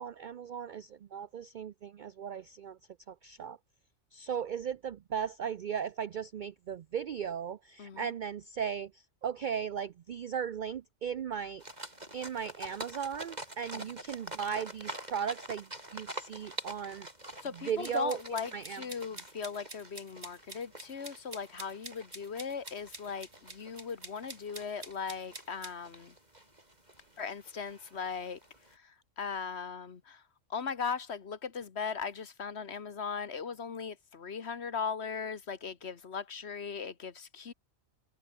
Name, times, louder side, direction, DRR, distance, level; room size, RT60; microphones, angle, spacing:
voice 1, 0.0-2.8 3.1-3.6 4.1-11.6 12.1-17.1 17.5-18.2 18.5-18.8, right 7 dB, 80° right, 0.4 m, -37 dB
voice 2, 7.8-8.1 13.7-13.9 17.4-26.2 27.2-28.4 28.7-30.2 30.5-37.5, left 6 dB, 50° left, 1.6 m, -38 dB
sound 1, 11.6-28.7, right 1 dB, 30° right, 6.7 m, -47 dB
sound 2, 17.8-25.7, right 2 dB, 50° right, 4.8 m, -47 dB
omnidirectional pair, 1.4 m